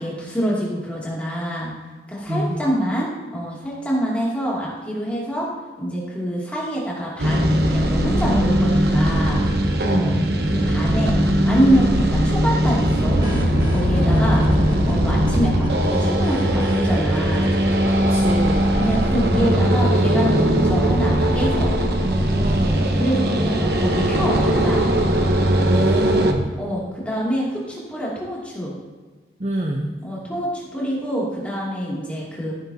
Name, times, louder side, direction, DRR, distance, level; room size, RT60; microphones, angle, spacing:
voice 1, 0.0-1.7 2.1-5.5 5.8-9.4 10.0-10.2 10.5-11.2 11.4-13.3 13.7-14.4 14.8-17.5 18.7-21.7 23.0-24.8 26.5-28.7 30.0-32.5, equal, 10° left, -5 dB, 2.6 m, -25 dB
voice 2, 2.3-2.6 9.8-10.3 14.0-14.3 18.1-18.7 22.0-22.9 25.6-26.5 29.4-29.9, right 1 dB, 35° right, 1 dB, 0.8 m, -25 dB
sound 1, 7.2-26.3, equal, 60° right, 1.1 m, -19 dB
sound 2, 13.0-19.0, equal, 20° right, 1.8 m, -27 dB
15.0 x 7.9 x 2.8 m, 1.4 s
head